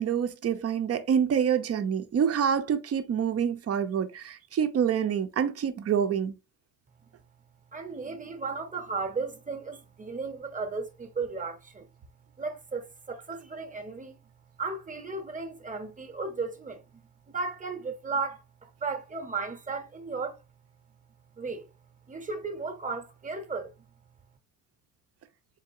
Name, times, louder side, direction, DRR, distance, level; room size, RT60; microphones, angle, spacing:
voice 1, 0.0-6.3, right 8 dB, 45° right, 0.7 m, -27 dB
voice 2, 7.7-11.9 12.4-14.2 14.6-17.0 17.3-20.4 21.4-21.7 22.1-23.9, right 4 dB, 25° right, 1.0 m, -35 dB
4.0 x 3.6 x 2.7 m
cardioid pair, 90°, 34 cm